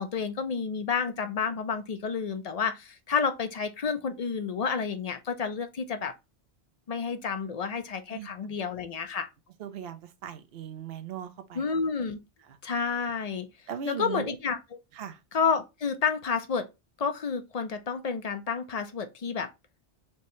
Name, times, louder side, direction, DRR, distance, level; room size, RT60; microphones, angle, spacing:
voice 1, 0.0-6.1 6.9-9.3 11.5-12.2 12.6-13.5 13.9-14.8 15.3-16.7 17.0-19.5, left 5 dB, 50° left, 0.5 m, -30 dB
voice 2, 9.6-11.7 12.5-12.6 13.7-14.4 14.9-15.2, right 8 dB, 65° right, 0.9 m, -38 dB
4.5 x 2.8 x 3.1 m
omnidirectional pair, 1.2 m